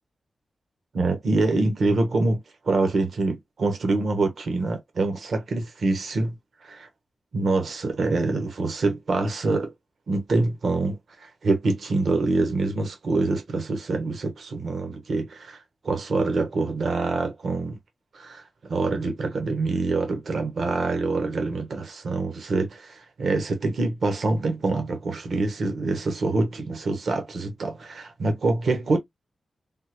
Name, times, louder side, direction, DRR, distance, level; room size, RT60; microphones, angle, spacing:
voice 1, 0.9-6.3 6.6-6.9 7.3-9.7 10.1-17.8 18.1-18.4 18.7-29.0, right 3 dB, 70° right, 0.9 m, -25 dB
3.5 x 2.0 x 2.9 m
wide cardioid pair, 85°, 0 cm